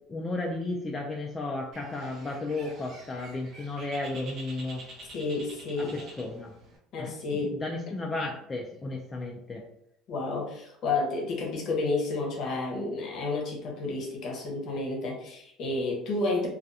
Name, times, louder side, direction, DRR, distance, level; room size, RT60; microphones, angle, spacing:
voice 1, 0.1-4.9 5.8-6.5 7.0-9.6, left 2 dB, 20° left, 0 dB, 0.4 m, -34 dB
Bird, 1.7-6.8, right 2 dB, 50° right, 0.7 m, -47 dB
voice 2, 5.1-6.0 6.9-7.6 10.1-16.5, left 3 dB, 55° left, 0 dB, 0.8 m, -31 dB
2.4 x 2.2 x 2.6 m, 0.75 s
supercardioid pair, 110°, 0 cm